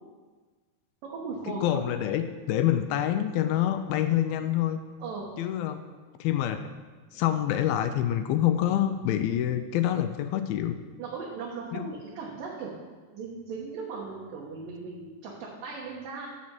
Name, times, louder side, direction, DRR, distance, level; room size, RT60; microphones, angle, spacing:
voice 1, 1.0-1.8 5.0-5.3 11.0-12.7 13.1-16.3, right 4 dB, 70° right, -4 dB, 2.7 m, -37 dB
voice 2, 1.6-4.8 5.4-5.8 6.2-6.7 7.1-10.8 11.7-11.9, left 11 dB, 85° left, 9 dB, 2.4 m, -26 dB
11.0 x 4.2 x 7.5 m, 1.3 s
omnidirectional pair, 4.3 m